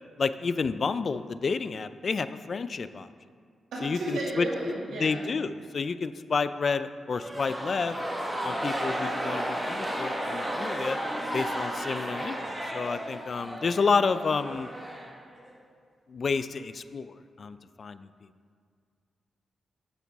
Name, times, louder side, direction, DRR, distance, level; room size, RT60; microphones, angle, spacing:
voice 1, 0.2-3.1 3.8-4.5 5.0-8.0 8.4-11.0 11.3-12.4 12.7-14.7 16.1-18.1, left 5 dB, 55° left, 13 dB, 0.3 m, -30 dB
voice 2, 3.7-5.2, right 2 dB, 85° right, -5 dB, 2.1 m, -33 dB
sound 1, 7.1-15.5, equal, 15° right, 1.4 m, -33 dB
8.5 x 7.9 x 3.6 m, 2.2 s
supercardioid pair, 55°, 0 cm